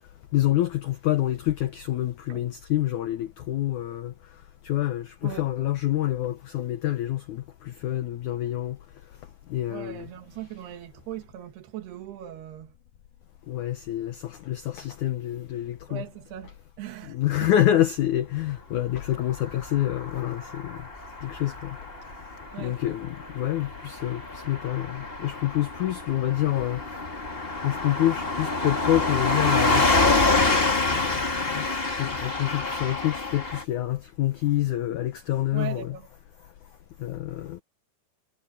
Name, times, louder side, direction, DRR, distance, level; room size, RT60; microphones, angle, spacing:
voice 1, 0.3-4.1 4.6-8.8 9.5-10.1 13.5-16.0 17.1-20.8 21.2-21.8 22.6-26.8 27.6-29.8 30.4-31.2 31.5-36.0 37.0-37.6, left 13 dB, 80° left, 1.7 m, -27 dB
voice 2, 9.7-12.7 15.9-17.5 22.5-22.8 35.5-36.1, right 11 dB, 75° right, 3.6 m, -39 dB
Car passing by / Truck, 19.3-33.6, left 3 dB, 20° left, 1.9 m, -27 dB
omnidirectional pair, 4.7 m